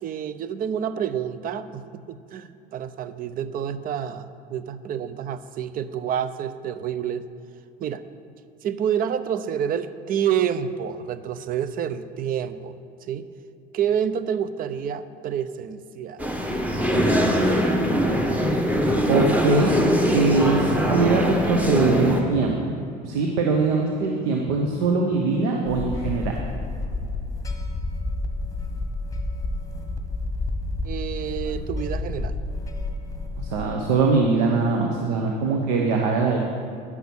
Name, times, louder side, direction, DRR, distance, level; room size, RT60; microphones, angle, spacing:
voice 1, 0.0-7.3 7.8-8.0 8.6-12.7 13.1-13.3 13.7-16.2 30.8-32.3, right 8 dB, 50° right, 13 dB, 0.6 m, -28 dB
sound 1, 16.2-22.2, equal, 10° right, 1.3 m, -22 dB
voice 2, 19.1-19.8 20.1-22.8 23.0-26.3 33.4-36.5, right 4 dB, 85° right, 1 dB, 1.0 m, -22 dB
sound 2, 25.6-33.6, left 2 dB, 15° left, 1.3 m, -30 dB
9.8 x 5.9 x 7.1 m, 2.5 s
supercardioid pair, 95°, 19 cm